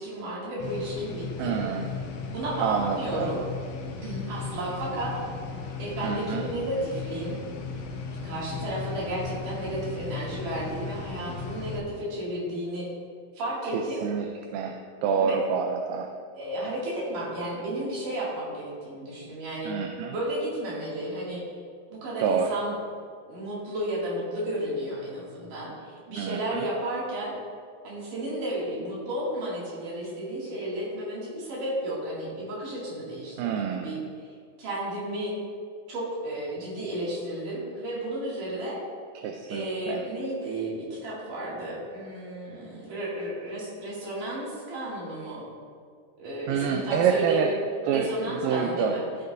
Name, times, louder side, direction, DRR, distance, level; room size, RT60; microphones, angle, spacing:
voice 1, 0.0-1.6 2.3-3.4 4.0-5.1 5.8-7.3 8.2-12.9 13.4-14.0 15.2-15.4 16.3-19.8 20.1-21.4 21.9-22.7 23.3-27.3 27.8-34.0 34.6-35.4 35.9-38.8 39.5-45.5 46.2-47.5 47.9-49.0, right 1 dB, 70° right, -6 dB, 3.7 m, -33 dB
sound 1, 0.6-11.8, left 5 dB, 85° left, 1.4 m, -36 dB
voice 2, 1.4-1.9 2.6-3.3 6.0-6.5 13.6-14.3 14.5-16.1 19.7-20.1 22.2-22.6 26.2-26.7 33.4-34.1 39.2-40.0 46.5-47.5 47.8-48.9, right 7 dB, 85° right, 3 dB, 2.3 m, -27 dB
14.0 x 6.7 x 2.6 m, 2.1 s
omnidirectional pair, 3.9 m